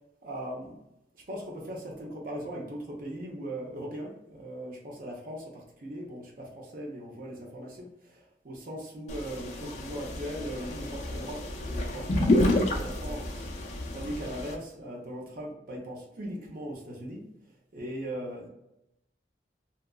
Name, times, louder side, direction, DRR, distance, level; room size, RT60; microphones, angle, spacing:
voice 1, 0.2-0.8 1.3-17.3 17.7-18.5, right 1 dB, 50° right, -2 dB, 0.6 m, -39 dB
sound 1, 9.1-14.5, left 1 dB, 40° left, 0.4 m, -29 dB
2.7 x 2.3 x 2.3 m, 0.86 s
head